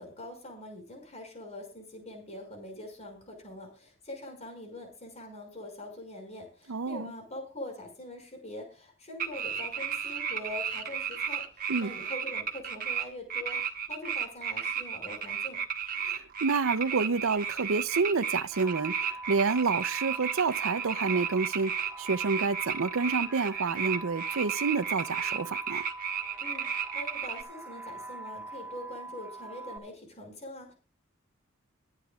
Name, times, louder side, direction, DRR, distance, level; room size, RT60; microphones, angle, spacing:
voice 1, 0.0-15.6 26.4-30.7, left 1 dB, 35° left, 5.7 m, -43 dB
voice 2, 6.7-7.1 11.7-11.9 16.0-25.9, right 4 dB, 85° right, 0.6 m, -29 dB
sound 1, 9.2-13.0 13.3-27.4, right 7 dB, 45° right, 1.6 m, -33 dB
sound 2, 18.5-29.8, right 2 dB, 10° right, 1.6 m, -44 dB
22.5 x 9.8 x 2.4 m
head